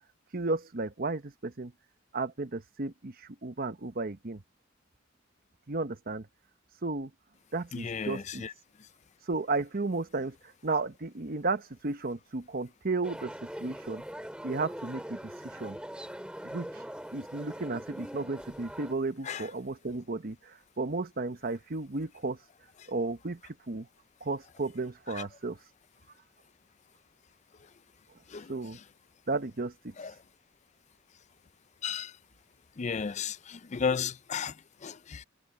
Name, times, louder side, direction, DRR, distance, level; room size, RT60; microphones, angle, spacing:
voice 1, 0.3-1.7 2.1-3.1 3.4-4.4 5.7-6.3 6.8-7.1 7.5-8.4 9.3-10.4 10.6-13.3 13.6-14.0 14.4-15.8 16.4-16.7 17.1-22.4 22.9-23.4 23.7-23.9 24.2-25.6 28.5-28.8 29.3-29.9, right 3 dB, 50° right, 1.0 m, -33 dB
voice 2, 7.7-8.5 19.2-19.5 25.1-25.3 28.3-28.8 30.0-30.1 31.8-32.2 32.8-35.2, left 6 dB, 35° left, 0.4 m, -34 dB
sound 1, 13.0-18.9, equal, 5° right, 5.2 m, -42 dB
head